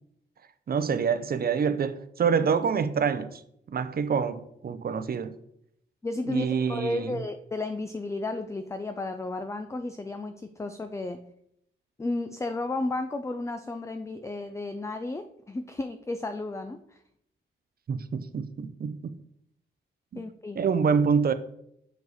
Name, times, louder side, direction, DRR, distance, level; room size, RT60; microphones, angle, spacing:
voice 1, 0.7-3.4 3.7-5.4 6.3-7.2 17.9-19.0 20.1-20.2 20.6-21.3, right 6 dB, 50° right, 0.6 m, -26 dB
voice 2, 6.0-11.2 12.0-17.0 20.2-20.6, left 2 dB, 15° left, 0.4 m, -33 dB
6.5 x 4.9 x 4.1 m
cardioid pair, 100°, 21 cm